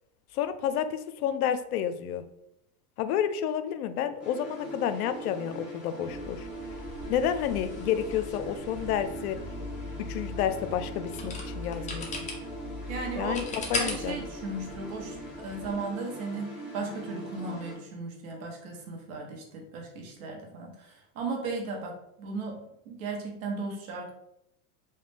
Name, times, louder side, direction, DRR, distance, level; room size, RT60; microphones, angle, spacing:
voice 1, 0.3-2.2 3.0-6.5 7.1-9.4 10.0-12.1 13.2-14.2, left 9 dB, 85° left, 11 dB, 0.5 m, -30 dB
sound 1, 4.2-17.8, right 1 dB, ahead, 1.2 m, -41 dB
sound 2, 6.1-15.7, left 3 dB, 15° left, 0.6 m, -39 dB
voice 2, 12.9-13.4 13.7-24.1, right 3 dB, 70° right, 1 dB, 1.2 m, -36 dB
3.2 x 2.8 x 3.4 m, 0.80 s
supercardioid pair, 125°, 44 cm